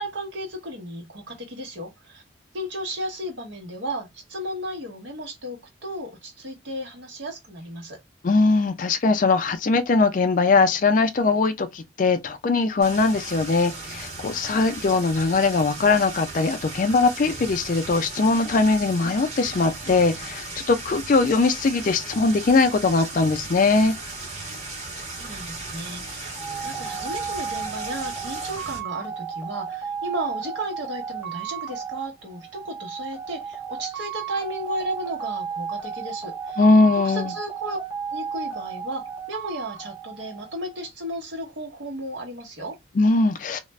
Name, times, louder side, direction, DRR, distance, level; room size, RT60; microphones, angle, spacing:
voice 1, 0.0-2.2 2.5-8.0 25.2-26.3 26.6-36.6 37.0-37.8 38.1-42.8, right 1 dB, 80° right, 1.0 m, -34 dB
voice 2, 8.2-23.9 36.6-37.3 43.0-43.6, left 3 dB, 45° left, 0.4 m, -21 dB
sound 1, 12.8-28.8, right 2 dB, 35° right, 1.1 m, -37 dB
sound 2, 26.4-40.8, right 7 dB, 10° right, 0.9 m, -34 dB
2.4 x 2.1 x 3.1 m
head